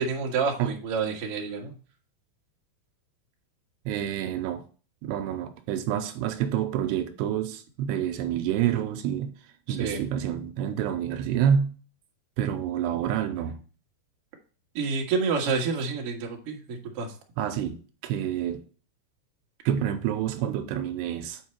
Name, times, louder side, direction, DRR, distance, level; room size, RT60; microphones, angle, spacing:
voice 1, 0.0-1.7 9.7-10.0 14.7-17.1, right 5 dB, 55° right, 1.7 m, -28 dB
voice 2, 3.9-4.6 5.0-9.3 9.7-11.7 12.4-13.6 17.4-18.6 19.7-21.4, right 9 dB, 85° right, 2.7 m, -28 dB
8.1 x 4.6 x 4.3 m
omnidirectional pair, 4.8 m